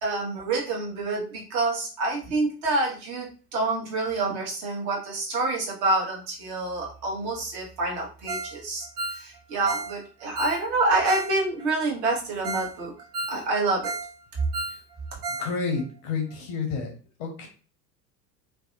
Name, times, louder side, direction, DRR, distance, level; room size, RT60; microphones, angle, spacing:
voice 1, 0.0-8.9 9.1-12.9 13.3-13.9, right 2 dB, 40° right, -2 dB, 1.0 m, -27 dB
Ringtone, 8.3-8.6 8.8-11.3 11.6-11.7 12.1-12.2 12.4-12.7 13.0-14.1 14.4-15.5 15.8-15.9 16.3-16.4, right 3 dB, 70° right, 0.6 m, -33 dB
voice 2, 15.4-16.9 17.2-17.5, left 5 dB, 35° left, 2 dB, 0.6 m, -30 dB
2.6 x 2.2 x 2.5 m, 0.38 s
figure-of-eight pair, 80°, 49 cm